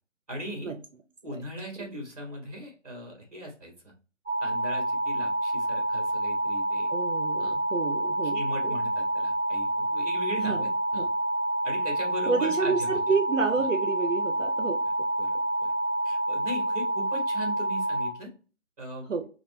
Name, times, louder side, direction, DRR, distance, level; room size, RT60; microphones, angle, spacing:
voice 1, 0.3-0.7 1.2-3.9 4.4-6.9 7.4-7.6 8.3-11.1 11.6-13.0 15.2-15.3 15.6-15.7 16.0-18.3 18.8-19.1, equal, 30° right, 0 dB, 1.3 m, -39 dB
sound 1, 4.3-18.1, right 1 dB, 10° right, 1.9 m, -28 dB
voice 2, 6.9-8.8 10.4-10.6 11.0-11.1 12.3-14.8 19.1-19.3, right 5 dB, 75° right, 7 dB, 0.7 m, -29 dB
4.1 x 2.4 x 3.2 m, 0.36 s
figure-of-eight pair, 175°, 38 cm